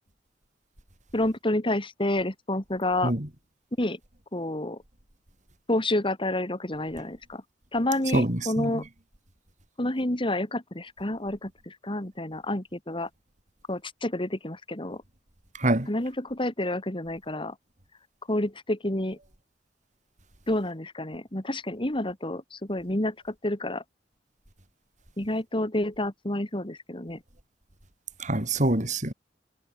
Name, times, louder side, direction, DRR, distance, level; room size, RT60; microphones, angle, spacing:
voice 1, 1.1-3.1 3.8-4.0 4.3-4.8 5.7-7.4 7.7-8.9 9.8-13.1 13.7-15.0 15.9-17.6 18.3-19.2 20.5-23.8 25.2-27.2, left 1 dB, 30° left, 2.8 m, -29 dB
voice 2, 8.1-8.8 15.6-15.9 28.2-29.1, right 1 dB, 45° right, 3.5 m, -25 dB
head